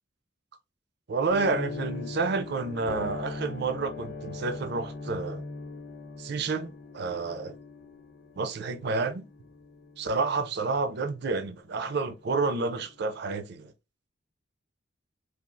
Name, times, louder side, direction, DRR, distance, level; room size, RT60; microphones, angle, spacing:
voice 1, 1.1-5.4 6.2-7.5 8.4-9.2 10.0-13.7, right 4 dB, 55° right, 0.5 m, -30 dB
sound 1, 1.3-11.8 12.1-12.2 12.8-13.0, left 3 dB, 50° left, 0.5 m, -40 dB
3.3 x 2.4 x 2.5 m
head